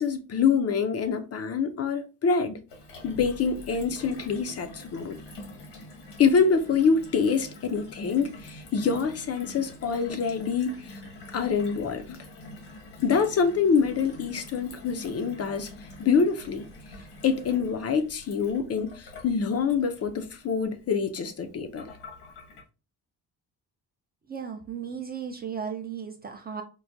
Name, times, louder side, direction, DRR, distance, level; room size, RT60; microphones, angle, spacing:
voice 1, 0.0-2.6 3.0-5.2 6.2-11.0 11.3-12.2 13.0-15.7 16.0-16.7 17.2-21.8, left 5 dB, 40° left, 0.4 m, -25 dB
Gurgling / Water tap faucet / Sink (filling or washing), 2.7-22.6, left 2 dB, 85° left, 1.2 m, -46 dB
voice 2, 24.3-26.6, right 7 dB, 25° right, 0.4 m, -35 dB
4.5 x 2.1 x 2.5 m
cardioid pair, 125°, 40 cm